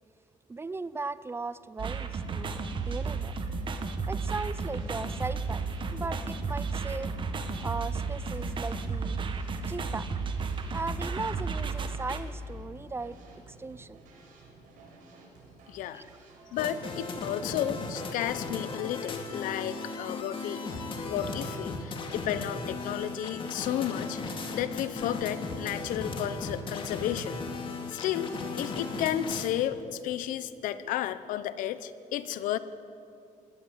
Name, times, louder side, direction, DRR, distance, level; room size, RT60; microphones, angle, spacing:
voice 1, 0.5-3.3 4.1-7.2 7.6-9.2 9.7-10.1 10.7-13.2 13.5-14.0 15.9-16.0, right 3 dB, 20° right, 17 dB, 0.6 m, -37 dB
sound 1, 1.8-12.2, right 4 dB, 40° right, 1.5 m, -33 dB
sound 2, 2.1-17.3, right 3 dB, 85° right, 6.3 m, -53 dB
voice 2, 15.7-16.0 16.5-20.6 21.0-27.4 27.9-32.6, left 11 dB, 85° left, 14 dB, 1.0 m, -33 dB
sound 3, 16.6-29.5, left 3 dB, 40° left, 2.4 m, -36 dB
20.0 x 18.5 x 8.2 m, 2.6 s
cardioid pair, 135°, 13 cm